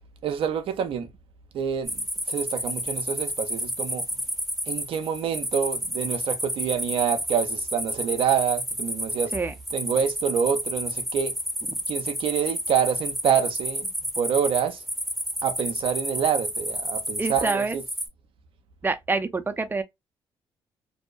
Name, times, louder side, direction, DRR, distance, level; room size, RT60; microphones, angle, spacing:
voice 1, 0.2-1.1 1.5-1.9 2.3-4.0 4.7-9.4 9.7-11.3 11.9-14.8 15.4-17.8, right 8 dB, 65° right, 0.5 m, -27 dB
sound 1, 1.9-18.1, equal, ahead, 0.9 m, -31 dB
voice 2, 17.2-17.8 18.8-19.8, right 3 dB, 20° right, 0.5 m, -26 dB
2.6 x 2.1 x 2.4 m
supercardioid pair, 60°, 10 cm